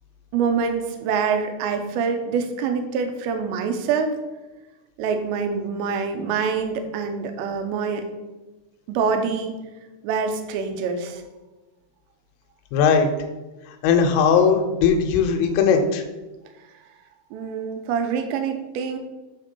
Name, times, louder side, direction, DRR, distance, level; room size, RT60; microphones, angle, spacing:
voice 1, 0.3-4.2 5.0-8.1 8.9-9.5 10.0-11.2 17.3-19.0, right 5 dB, 80° right, 5 dB, 2.8 m, -25 dB
voice 2, 12.7-13.1 13.8-16.0, left 6 dB, 90° left, 5 dB, 3.3 m, -18 dB
8.3 x 3.6 x 5.4 m, 1.1 s
omnidirectional pair, 5.6 m